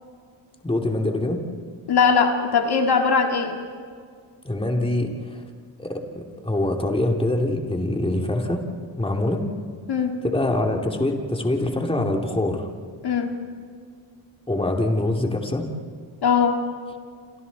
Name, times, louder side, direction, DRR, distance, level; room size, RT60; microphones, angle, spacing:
voice 1, 0.6-1.4 4.4-5.4 5.8-8.6 9.0-9.4 10.2-12.7 14.5-15.7, left 1 dB, 10° left, 2 dB, 2.7 m, -24 dB
voice 2, 1.9-3.6 9.9-10.1 13.0-13.3 16.2-16.6, left 5 dB, 55° left, 3 dB, 2.2 m, -20 dB
28.5 x 27.5 x 4.2 m, 2.1 s
cardioid pair, 80°, 45 cm